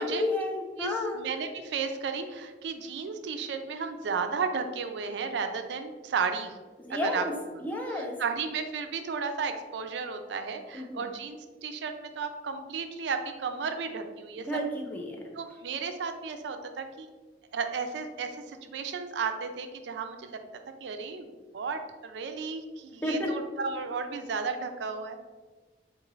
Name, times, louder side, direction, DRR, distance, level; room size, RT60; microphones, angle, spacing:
voice 1, 0.0-1.2 6.8-7.3 7.6-8.2 10.7-11.1 14.4-15.2 23.0-23.3, left 1 dB, 10° left, 0 dB, 0.4 m, -31 dB
voice 2, 0.8-6.5 6.9-7.2 7.9-14.4 15.3-17.1 17.5-20.4 20.8-25.2, right 5 dB, 75° right, 7 dB, 0.4 m, -34 dB
3.7 x 2.5 x 3.0 m, 1.3 s
head